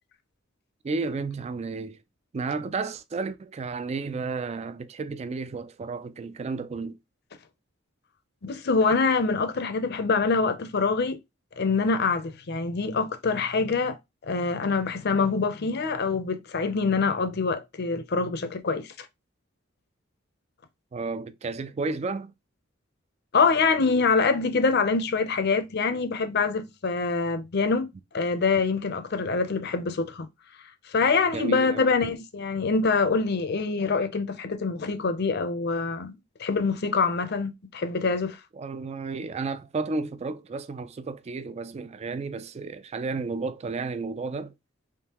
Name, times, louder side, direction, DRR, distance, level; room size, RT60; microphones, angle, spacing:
voice 1, 0.8-2.0 2.3-7.0 20.9-22.3 31.3-31.9 38.6-44.5, right 4 dB, 35° right, 0.3 m, -32 dB
voice 2, 8.4-11.2 11.6-19.1 23.3-27.9 28.1-30.3 30.9-38.4, left 4 dB, 55° left, 0.6 m, -25 dB
3.6 x 3.0 x 2.9 m
head